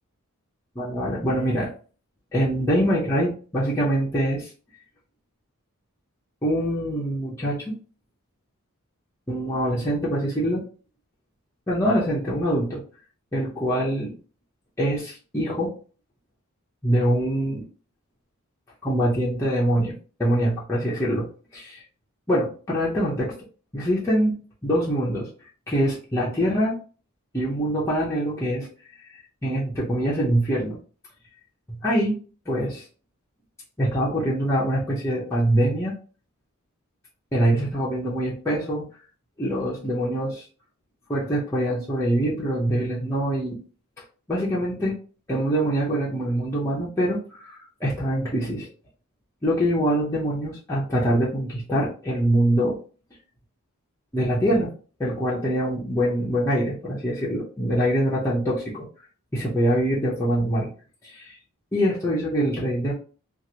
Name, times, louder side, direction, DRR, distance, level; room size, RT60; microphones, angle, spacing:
voice 1, 0.8-1.7 2.3-4.5 6.4-7.7 9.3-10.6 11.7-12.8 13.3-14.1 14.8-15.7 16.8-17.6 18.8-19.9 20.2-21.8 22.3-23.3 23.7-24.3 24.6-25.3 25.7-26.7 27.3-28.7 29.1-30.8 31.7-32.1 32.5-32.8 33.8-35.9 37.3-38.9 39.4-40.5 41.1-43.6 44.3-45.0 45.3-48.7 49.4-52.8 54.1-54.7 55.0-58.9 59.3-60.7 61.0-61.4 61.7-62.9, equal, 15° left, -7 dB, 0.6 m, -24 dB
2.9 x 2.5 x 2.7 m, 0.38 s
head